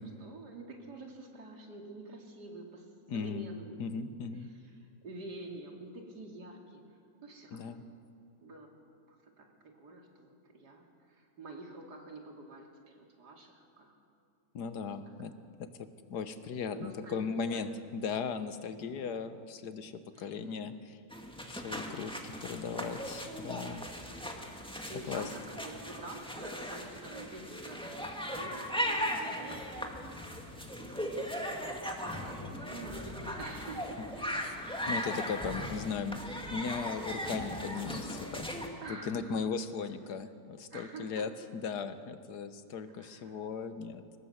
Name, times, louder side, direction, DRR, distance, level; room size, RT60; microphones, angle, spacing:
voice 1, 0.0-3.8 4.4-6.8 7.2-7.8 8.4-8.7 9.1-13.9 16.7-17.7 18.7-19.2 20.1-20.7 24.9-27.9 28.2-30.4 30.8-34.6 38.8-39.4 40.7-41.3 42.9-43.4, right 2 dB, 85° right, 1 dB, 3.3 m, -48 dB
voice 2, 3.1-3.5 3.8-4.5 7.5-7.8 14.5-15.3 15.6-20.7 21.5-23.9 25.1-25.3 29.3-29.4 34.9-38.6 38.9-44.0, left 5 dB, 80° left, 11 dB, 1.7 m, -37 dB
sound 1, 21.1-38.7, equal, 5° left, 1.9 m, -38 dB
23.0 x 19.0 x 8.0 m, 2.5 s
omnidirectional pair, 1.7 m